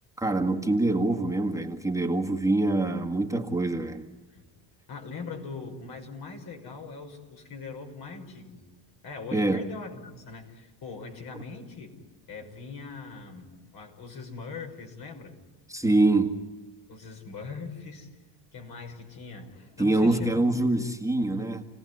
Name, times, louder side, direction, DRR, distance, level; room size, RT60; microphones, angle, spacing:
voice 1, 0.2-4.1 9.3-9.7 15.7-16.4 19.8-21.6, right 2 dB, 5° right, 0 dB, 1.9 m, -25 dB
voice 2, 4.9-8.7 9.0-12.0 12.3-15.4 16.9-18.1 18.5-20.5, left 4 dB, 60° left, 3 dB, 6.0 m, -41 dB
29.5 x 18.0 x 9.8 m, 1.2 s
cardioid pair, 105°, 42 cm